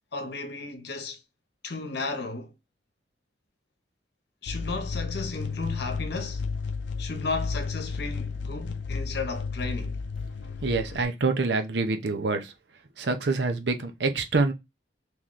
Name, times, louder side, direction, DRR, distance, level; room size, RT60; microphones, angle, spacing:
voice 1, 0.1-1.2 1.6-2.5 4.4-6.4 7.0-10.0, left 3 dB, 65° left, 0.9 m, -34 dB
sound 1, 4.5-11.0, left 4 dB, 85° left, 0.5 m, -33 dB
voice 2, 10.6-12.5 13.0-14.5, right 3 dB, 70° right, 0.7 m, -26 dB
3.1 x 3.0 x 3.7 m
head